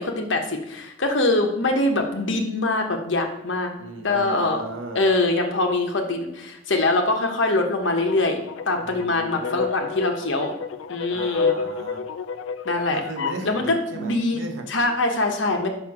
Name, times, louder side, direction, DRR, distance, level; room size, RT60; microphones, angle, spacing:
voice 1, 0.0-3.7 4.0-4.6 4.9-8.4 8.6-10.6 10.9-11.5 12.6-13.0 13.4-14.4 14.7-15.7, left 2 dB, 70° left, 3 dB, 1.1 m, -23 dB
voice 2, 3.8-5.0 8.8-9.6 11.1-12.0 12.9-14.8, right 2 dB, 90° right, 4 dB, 1.1 m, -36 dB
sound 1, 7.8-13.5, left 5 dB, 85° left, 0.4 m, -30 dB
5.7 x 4.5 x 5.8 m, 0.85 s
head